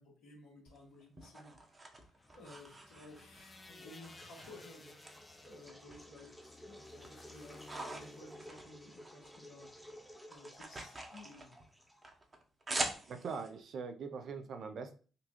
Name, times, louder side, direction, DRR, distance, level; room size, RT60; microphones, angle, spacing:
voice 1, 0.0-9.7 9.9-11.6, left 2 dB, 80° left, -3 dB, 1.5 m, -56 dB
sound 1, 0.7-3.5 4.0-5.1 5.4-6.5 6.8-9.4 9.7-13.5, right 2 dB, 35° right, 0.8 m, -44 dB
sound 2, 2.2-10.2, left 3 dB, 35° left, 0.5 m, -58 dB
sound 3, 3.7-12.3, equal, 5° left, 0.8 m, -55 dB
voice 2, 13.1-14.9, right 5 dB, 60° right, 7 dB, 0.5 m, -42 dB
3.8 x 2.3 x 2.9 m, 0.38 s
hypercardioid pair, 55°, 0 cm